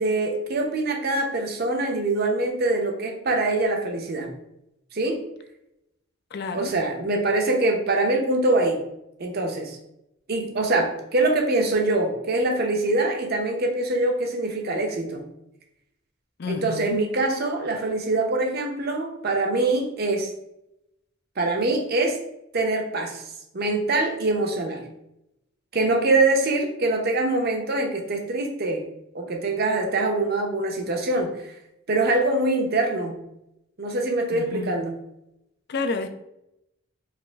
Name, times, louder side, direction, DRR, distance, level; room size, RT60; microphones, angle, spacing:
voice 1, 0.0-4.3 4.9-5.2 6.5-8.8 9.2-9.8 10.3-15.2 16.5-20.3 21.4-22.2 22.5-23.2 23.5-24.8 25.7-28.8 29.1-31.5 31.9-33.2 33.8-35.0, right 2 dB, 55° right, 3 dB, 0.8 m, -24 dB
voice 2, 6.3-6.7 16.4-17.0 34.3-34.7 35.7-36.1, left 3 dB, 55° left, 8 dB, 0.5 m, -30 dB
4.8 x 2.6 x 3.4 m, 0.83 s
head